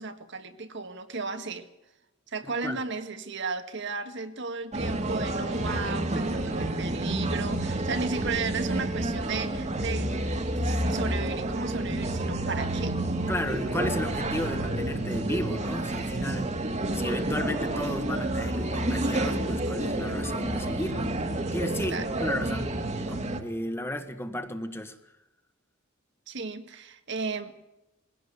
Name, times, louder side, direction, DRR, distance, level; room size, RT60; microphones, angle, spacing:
voice 1, 0.0-1.6 2.3-10.1 10.6-13.0 21.9-22.1 26.3-27.5, right 4 dB, 60° right, 8 dB, 1.8 m, -34 dB
sound 1, 4.7-23.4, right 1 dB, 35° right, 1.9 m, -29 dB
voice 2, 13.3-21.1 21.5-22.8 23.1-25.0, left 1 dB, 10° left, 9 dB, 1.4 m, -34 dB
21.5 x 16.5 x 8.2 m, 0.95 s
head